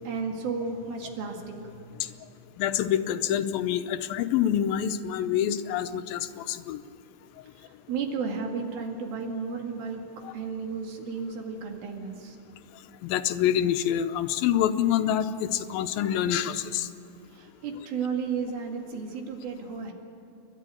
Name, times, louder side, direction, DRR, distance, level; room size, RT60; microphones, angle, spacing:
voice 1, 0.0-2.2 7.6-10.0 10.3-12.4 17.3-19.9, right 5 dB, 85° right, 2 dB, 3.9 m, -33 dB
voice 2, 2.6-6.8 10.2-10.3 13.0-16.9, left 10 dB, 80° left, 10 dB, 2.5 m, -26 dB
30.0 x 12.0 x 9.2 m, 2.6 s
omnidirectional pair, 4.1 m